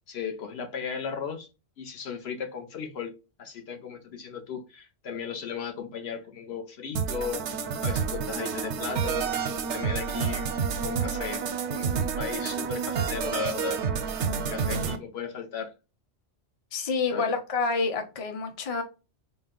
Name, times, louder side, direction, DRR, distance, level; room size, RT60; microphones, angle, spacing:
voice 1, 0.1-1.5 1.8-3.1 3.4-9.4 9.7-10.5 10.8-13.8 14.5-15.7 17.1-17.4, left 6 dB, 70° left, 4 dB, 0.9 m, -36 dB
sound 1, 7.0-15.0, right 6 dB, 85° right, 0.9 m, -29 dB
voice 2, 16.7-18.8, left 4 dB, 40° left, 5 dB, 0.7 m, -28 dB
3.9 x 2.1 x 3.6 m, 0.29 s
omnidirectional pair, 1.1 m